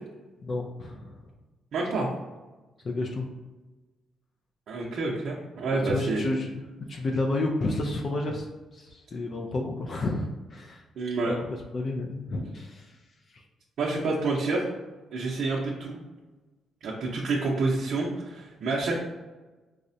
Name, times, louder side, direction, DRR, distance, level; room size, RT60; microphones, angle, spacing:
voice 1, 0.4-1.2 2.8-3.3 5.7-6.6 6.9-8.5 8.7-10.8 11.3-13.0, left 2 dB, 40° left, 1 dB, 0.4 m, -30 dB
voice 2, 1.7-2.1 4.7-6.2 11.0-11.3 12.4-12.5 13.8-14.6 15.1-16.0 16.8-19.0, right 3 dB, 65° right, -4 dB, 0.5 m, -28 dB
4.7 x 2.0 x 2.6 m, 1.2 s
cardioid pair, 115°, 0 cm